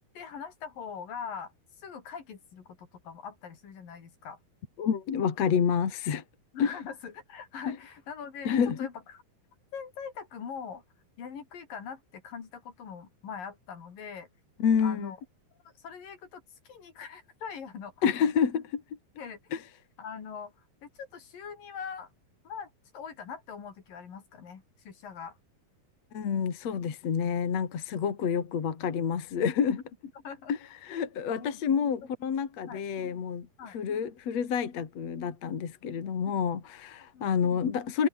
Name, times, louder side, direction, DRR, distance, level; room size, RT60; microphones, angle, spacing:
voice 1, 0.1-4.4 6.5-9.2 9.7-10.8 11.2-14.3 14.8-15.2 15.8-17.9 19.1-19.5 20.0-20.5 20.8-22.1 22.4-25.4 30.1-30.6 31.4-31.6 32.7-32.8 33.6-33.8 36.0-36.1 37.1-37.3, left 6 dB, 70° left, 5.1 m, -42 dB
voice 2, 4.8-6.2 6.6-6.7 7.7-7.8 8.5-8.8 14.6-15.1 18.0-18.8 19.5-19.6 26.1-29.8 30.5-30.6 30.8-33.5 33.7-38.1, left 7 dB, 50° left, 3.5 m, -28 dB
omnidirectional pair, 4.2 m